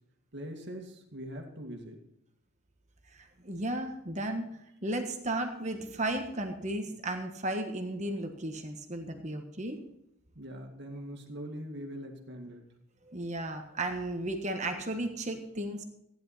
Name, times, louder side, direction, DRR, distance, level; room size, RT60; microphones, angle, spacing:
voice 1, 0.3-2.0 10.4-12.7, equal, 50° right, 3 dB, 2.2 m, -42 dB
voice 2, 3.1-4.5 4.8-9.8 13.1-15.8, right 1 dB, 30° right, 5 dB, 1.4 m, -34 dB
15.5 x 10.5 x 4.2 m, 0.79 s
head